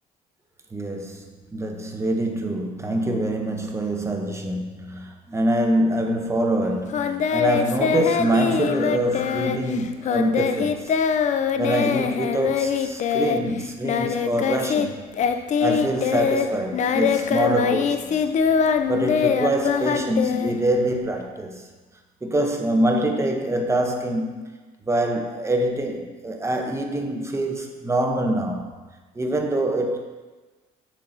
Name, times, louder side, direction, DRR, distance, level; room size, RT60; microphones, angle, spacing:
voice 1, 0.7-10.9 11.6-15.3 15.6-18.2 18.9-21.7 22.2-24.4 24.8-28.7 29.1-30.0, right 1 dB, 15° right, 3 dB, 0.9 m, -25 dB
Singing, 6.9-14.9 15.1-21.0, left 7 dB, 45° left, 0.4 m, -23 dB
7.3 x 7.3 x 2.8 m, 1.3 s
cardioid pair, 110°, 17 cm